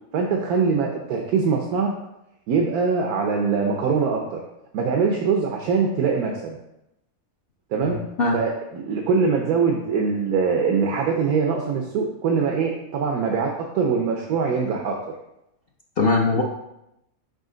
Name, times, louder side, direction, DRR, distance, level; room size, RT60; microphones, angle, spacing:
voice 1, 0.1-1.9 2.5-4.4 4.7-6.6 7.7-8.0 8.3-15.0, right 5 dB, 90° right, 1 dB, 1.2 m, -23 dB
voice 2, 7.8-8.4 16.0-16.4, left 3 dB, 55° left, 0 dB, 0.7 m, -21 dB
5.6 x 5.3 x 3.8 m, 0.86 s
omnidirectional pair, 1.5 m